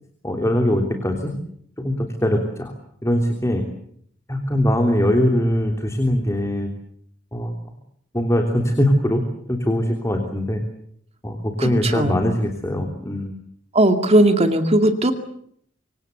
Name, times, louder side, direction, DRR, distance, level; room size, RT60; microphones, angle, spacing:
voice 1, 0.2-1.4 1.8-2.7 3.0-3.6 4.3-6.7 7.3-7.5 8.1-9.2 9.5-10.6 11.2-13.4, equal, 15° left, 4 dB, 3.3 m, -21 dB
voice 2, 11.6-12.2 13.7-15.1, right 1 dB, 35° right, 7 dB, 2.3 m, -17 dB
26.0 x 25.0 x 8.1 m, 0.67 s
head